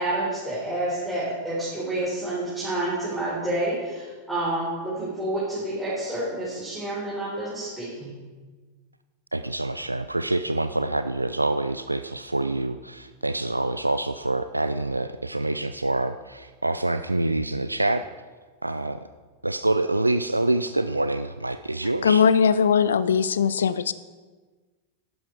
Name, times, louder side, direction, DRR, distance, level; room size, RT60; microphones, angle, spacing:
voice 1, 0.0-8.1, right 1 dB, 5° right, -10 dB, 4.4 m, -29 dB
voice 2, 9.3-18.1 18.6-19.0 19.4-22.2, right 2 dB, 85° right, 10 dB, 0.3 m, -26 dB
voice 3, 22.0-23.9, left 6 dB, 65° left, 16 dB, 0.4 m, -20 dB
11.5 x 10.5 x 4.8 m, 1.4 s
figure-of-eight pair, 90°, 0 cm